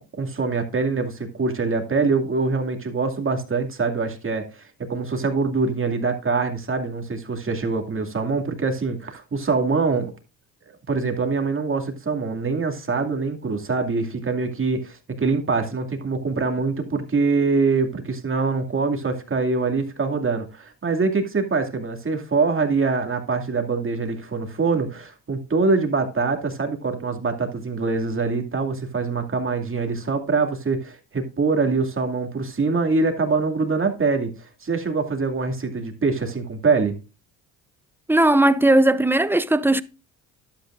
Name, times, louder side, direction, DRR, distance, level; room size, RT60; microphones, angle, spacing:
voice 1, 0.2-4.4 4.8-10.1 10.7-37.0, right 4 dB, 30° right, 2.4 m, -24 dB
voice 2, 38.1-39.8, right 1 dB, 5° right, 0.6 m, -17 dB
11.5 x 8.5 x 2.5 m
supercardioid pair, 65°, 40 cm